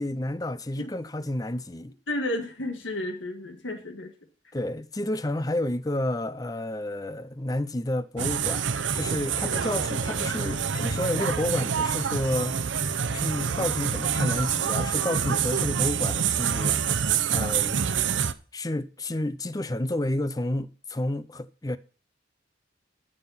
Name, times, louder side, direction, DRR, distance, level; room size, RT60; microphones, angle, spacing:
voice 1, 0.0-1.9 4.5-8.7 8.9-12.6 13.1-16.8 17.3-17.8 18.5-21.8, left 1 dB, 20° left, 0.6 m, -30 dB
voice 2, 2.1-4.1, left 1 dB, 85° left, 1.8 m, -32 dB
sound 1, 8.2-18.3, right 7 dB, 80° right, 0.8 m, -27 dB
14.0 x 5.6 x 5.6 m
head